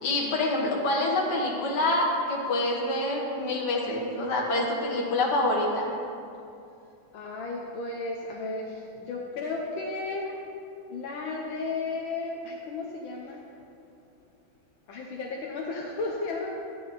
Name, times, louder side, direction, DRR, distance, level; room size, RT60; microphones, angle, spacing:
voice 1, 0.0-5.9, left 2 dB, 60° left, -1 dB, 2.1 m, -26 dB
voice 2, 7.1-10.2 10.9-13.4 14.9-16.5, left 3 dB, 80° left, -1 dB, 1.7 m, -34 dB
12.5 x 9.3 x 4.2 m, 2.6 s
omnidirectional pair, 2.1 m